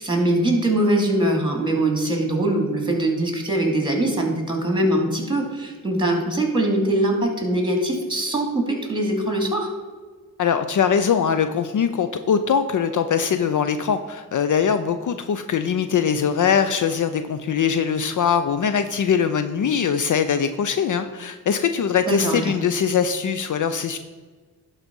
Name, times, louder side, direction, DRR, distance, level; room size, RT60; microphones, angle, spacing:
voice 1, 0.0-9.7 22.0-22.5, right 1 dB, 10° right, 2 dB, 2.7 m, -22 dB
voice 2, 10.4-24.0, left 7 dB, 55° left, 10 dB, 0.6 m, -22 dB
11.5 x 4.1 x 5.4 m, 1.4 s
supercardioid pair, 50°, 37 cm